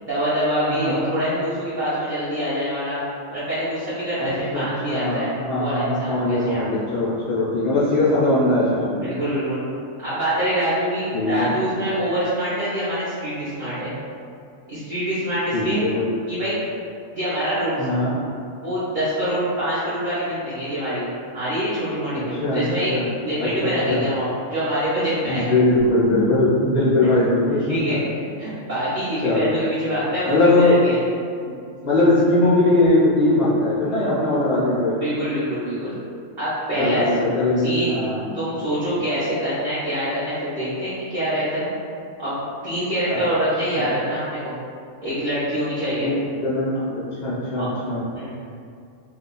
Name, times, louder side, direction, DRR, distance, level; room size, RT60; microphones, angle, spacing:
voice 1, 0.0-3.0 3.3-5.3 5.5-6.7 9.0-9.6 10.0-13.9 14.7-15.8 16.3-16.6 17.1-17.8 18.6-21.0 21.3-22.9 23.2-25.5 27.0-27.1 27.5-31.0 34.9-35.9 36.4-37.1 37.6-38.0 38.3-41.7 42.2-44.6 45.0-46.1 47.5-47.7 48.1-48.4, equal, 40° right, -14 dB, 1.0 m, -25 dB
voice 2, 0.7-1.1 4.2-9.0 11.1-11.5 15.5-16.1 17.8-18.1 22.4-22.6 22.9-23.1 23.4-24.0 25.2-27.8 29.2-29.5 30.3-30.8 31.5-31.6 31.8-35.0 36.8-38.3 43.1-43.2 43.8-43.9 46.0-48.0, left 2 dB, 50° left, -8 dB, 0.5 m, -20 dB
2.8 x 2.3 x 3.8 m, 2.3 s
omnidirectional pair, 1.4 m